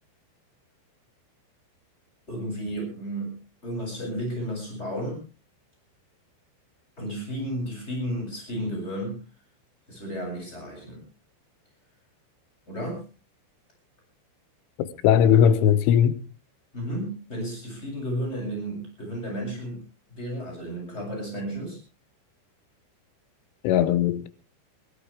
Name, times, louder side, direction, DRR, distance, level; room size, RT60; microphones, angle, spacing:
voice 1, 2.3-5.2 7.0-9.2 9.9-11.0 12.7-13.0 16.7-19.8 20.1-21.8, equal, 15° left, 7.9 m, -33 dB
voice 2, 14.8-16.2 23.6-24.3, left 9 dB, 85° left, 3.5 m, -19 dB
22.0 x 16.0 x 3.4 m
omnidirectional pair, 5.5 m